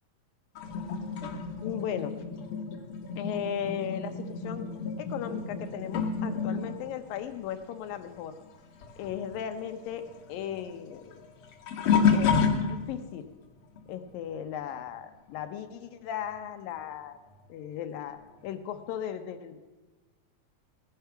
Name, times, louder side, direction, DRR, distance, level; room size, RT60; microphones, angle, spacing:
sound 1, 0.6-8.6 8.8-13.1 13.8-14.1 16.3-16.4 17.3-17.4, left 6 dB, 60° left, 2.1 m, -30 dB
voice 1, 1.6-2.1 3.2-4.7 5.0-8.4 9.0-11.2 12.1-12.4 12.6-13.3 13.9-17.2 17.5-19.6, left 9 dB, 85° left, 9 dB, 2.7 m, -36 dB
17.5 x 9.7 x 5.7 m, 1.2 s
omnidirectional pair, 3.9 m